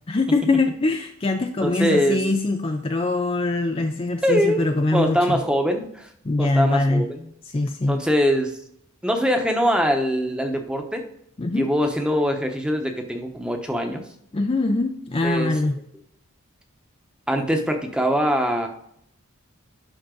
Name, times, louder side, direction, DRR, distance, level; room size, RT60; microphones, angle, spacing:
voice 1, 0.1-5.4 6.2-7.1 7.4-8.0 11.4-11.7 14.3-15.8, left 2 dB, 25° left, 5 dB, 0.4 m, -23 dB
voice 2, 1.6-2.2 4.2-4.7 4.9-6.1 6.4-7.2 7.9-8.5 9.0-11.0 11.5-14.0 15.2-15.5 17.3-18.7, equal, 5° right, 4 dB, 1.0 m, -22 dB
11.5 x 3.9 x 3.8 m, 0.69 s
head